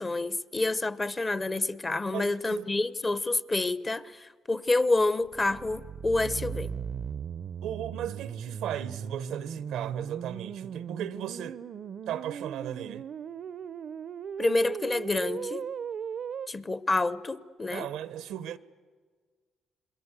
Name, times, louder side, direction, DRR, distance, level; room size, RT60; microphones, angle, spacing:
voice 1, 0.0-6.7 14.4-15.7 16.5-17.9, left 2 dB, 25° left, 0.9 m, -28 dB
voice 2, 2.1-2.7 7.6-11.6 12.1-13.1 17.7-18.6, right 10 dB, 90° right, 0.9 m, -36 dB
sound 1, 5.2-16.5, right 7 dB, 60° right, 0.7 m, -37 dB
27.5 x 21.5 x 8.2 m
cardioid pair, 90°, 0 cm